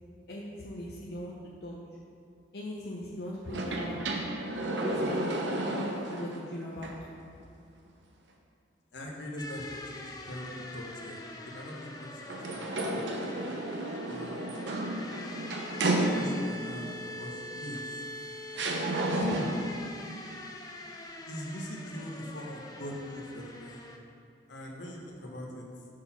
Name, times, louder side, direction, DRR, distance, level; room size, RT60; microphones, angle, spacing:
voice 1, 0.3-1.3 1.6-1.7 2.5-4.0 4.8-5.4 5.7-6.9, equal, 60° left, -5 dB, 0.7 m, -39 dB
sound 1, 3.5-6.4 6.8-6.9 12.3-16.6 17.7-17.8 18.5-19.7, right 1 dB, 75° right, 0.7 m, -32 dB
voice 2, 8.9-11.2 11.4-12.6 12.9-13.3 14.0-14.6 15.7-17.8 19.2-19.5 21.3-23.9 24.5-25.6, equal, 75° left, -1 dB, 1.0 m, -41 dB
sound 2, 9.4-24.0, left 1 dB, 20° left, 0.4 m, -44 dB
6.5 x 3.8 x 5.8 m, 2.4 s
head